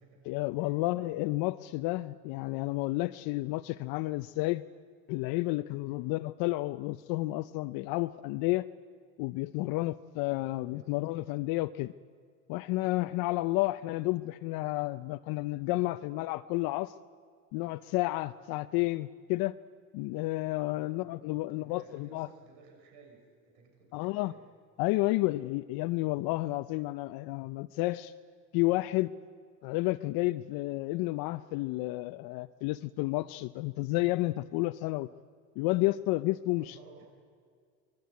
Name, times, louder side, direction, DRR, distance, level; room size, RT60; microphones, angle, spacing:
voice 1, 0.3-4.6 5.1-8.7 9.2-11.9 12.5-16.9 17.5-19.5 19.9-22.3 23.9-24.3 24.8-28.1 28.5-29.1 29.6-35.1 35.6-36.7, left 19 dB, 65° left, 11 dB, 0.6 m, -31 dB
voice 2, 10.2-11.0 20.7-24.5 36.6-37.1, right 4 dB, 80° right, 2 dB, 6.4 m, -57 dB
24.5 x 20.5 x 9.5 m, 2.1 s
supercardioid pair, 125°, 40 cm